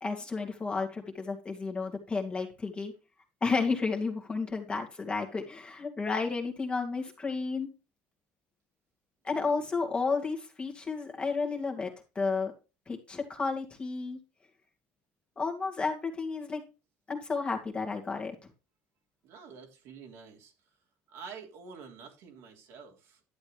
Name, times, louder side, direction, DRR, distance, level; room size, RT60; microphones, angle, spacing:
voice 1, 0.0-2.9 3.4-7.7 9.2-11.9 12.2-12.5 12.9-14.2 15.4-16.6 17.1-18.3, left 4 dB, 20° left, 2 dB, 2.3 m, -32 dB
voice 2, 9.3-9.7 19.2-20.5 21.1-23.3, right 6 dB, 70° right, 1 dB, 3.4 m, -48 dB
12.0 x 7.9 x 3.2 m, 0.29 s
cardioid pair, 115°, 5 cm